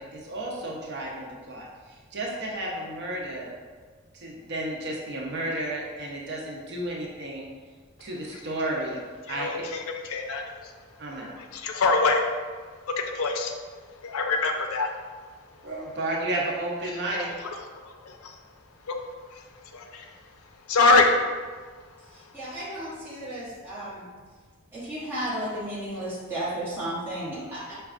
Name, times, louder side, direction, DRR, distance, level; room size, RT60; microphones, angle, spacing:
voice 1, 0.0-3.5 4.1-7.5 8.0-9.0 9.3-9.6 11.0-11.3 15.6-17.3, right 1 dB, 50° right, -2 dB, 0.5 m, -32 dB
voice 2, 9.3-10.4 11.5-12.2 13.1-13.5 14.0-14.9 18.9-19.0 19.7-20.0 20.7-21.1, left 3 dB, 75° left, 3 dB, 0.4 m, -23 dB
voice 3, 22.3-24.0 24.7-27.7, right 1 dB, 10° right, -12 dB, 1.0 m, -33 dB
4.8 x 2.3 x 2.4 m, 1.5 s
head